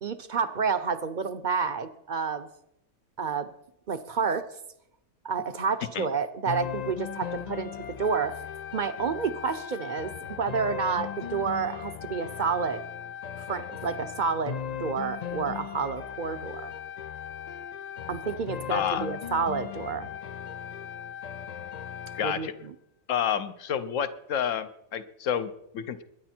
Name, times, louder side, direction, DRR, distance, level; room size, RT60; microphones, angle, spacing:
voice 1, 0.0-2.5 3.2-3.5 3.9-4.4 5.2-8.3 8.7-10.1 10.4-12.8 13.4-16.7 18.1-20.1 22.2-22.7, right 5 dB, 45° right, 12 dB, 0.7 m, -29 dB
sound 1, 6.5-22.5, left 9 dB, 90° left, 0.3 m, -38 dB
voice 2, 18.7-19.1 22.1-22.5 23.1-26.0, left 8 dB, 70° left, 12 dB, 1.2 m, -29 dB
21.5 x 10.0 x 4.4 m, 0.79 s
omnidirectional pair, 1.4 m